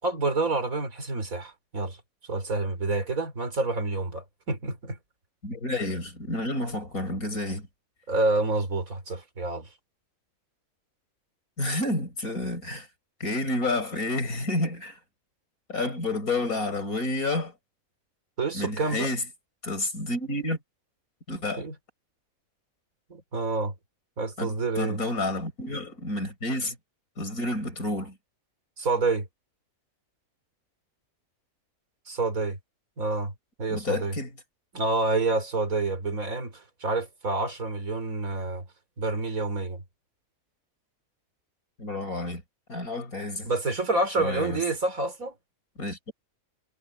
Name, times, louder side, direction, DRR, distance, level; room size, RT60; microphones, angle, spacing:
voice 1, 0.0-2.0 2.3-5.0 8.1-9.7 18.4-19.1 21.3-21.7 23.1-23.7 24.2-25.0 28.8-29.3 32.1-32.6 33.0-33.3 33.6-34.1 34.7-38.6 39.0-39.8 43.4-45.3, right 3 dB, 75° right, 4.2 m, -28 dB
voice 2, 5.4-7.7 11.6-12.9 13.2-15.0 15.7-17.5 18.5-19.2 19.6-20.6 21.3-21.6 24.4-26.8 27.2-28.2 33.7-34.3 41.8-42.4 42.7-43.5 44.2-44.6 45.8-46.1, left 2 dB, 85° left, 6.0 m, -30 dB
omnidirectional pair, 1.5 m